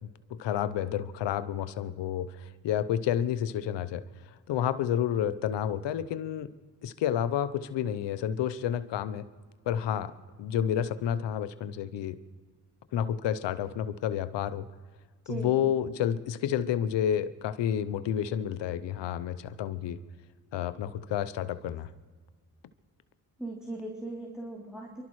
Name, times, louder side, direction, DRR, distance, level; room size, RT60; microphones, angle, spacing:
voice 1, 0.0-4.0 4.5-6.5 6.8-9.3 9.7-10.1 10.4-12.2 12.9-14.7 15.3-20.0 20.5-21.9, left 10 dB, 85° left, 14 dB, 0.8 m, -30 dB
voice 2, 23.4-25.0, right 2 dB, ahead, -5 dB, 3.1 m, -38 dB
29.0 x 12.5 x 3.2 m, 1.5 s
cardioid pair, 55°, 42 cm